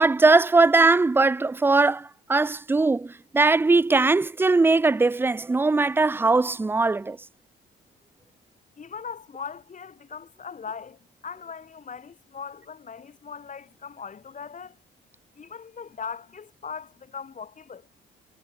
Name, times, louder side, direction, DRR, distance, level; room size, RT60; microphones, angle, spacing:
voice 1, 0.0-7.2, right 3 dB, 10° right, 0.3 m, -20 dB
voice 2, 8.8-14.8 15.4-17.9, left 6 dB, 40° left, 2.8 m, -39 dB
cardioid pair, 90°, 20 cm